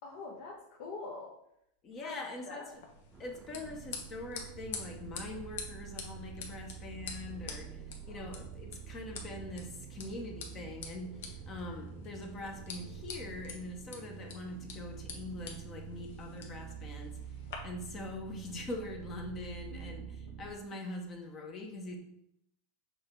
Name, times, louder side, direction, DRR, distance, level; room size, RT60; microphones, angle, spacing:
voice 1, 0.0-1.3 2.0-2.7 8.1-8.4 19.7-20.0, left 3 dB, 55° left, -2 dB, 1.2 m, -45 dB
voice 2, 1.8-2.6 3.2-17.2 17.6-22.0, left 2 dB, 25° left, 3 dB, 0.9 m, -43 dB
sound 1, 2.7-17.5, left 5 dB, 70° left, 1.4 m, -48 dB
sound 2, 3.1-13.4, right 5 dB, 15° right, 0.5 m, -54 dB
sound 3, 3.6-20.6, right 8 dB, 60° right, 0.7 m, -48 dB
6.5 x 3.8 x 4.5 m, 0.77 s
supercardioid pair, 165°, 0 cm